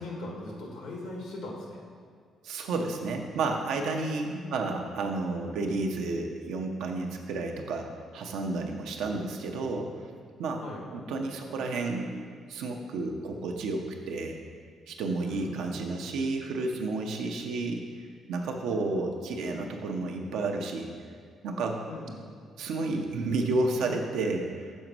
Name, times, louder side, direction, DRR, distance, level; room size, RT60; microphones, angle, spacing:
voice 1, 0.0-1.8 4.2-4.7 10.6-10.9 15.2-15.6 21.9-22.2, left 2 dB, 85° left, -2 dB, 1.6 m, -40 dB
voice 2, 2.4-9.9 10.4-10.6 10.9-12.1 12.5-14.4 14.9-20.9 21.4-21.8 22.6-24.8, right 3 dB, 85° right, 2 dB, 0.7 m, -31 dB
6.4 x 4.0 x 6.0 m, 2.1 s
cardioid pair, 90°, 0 cm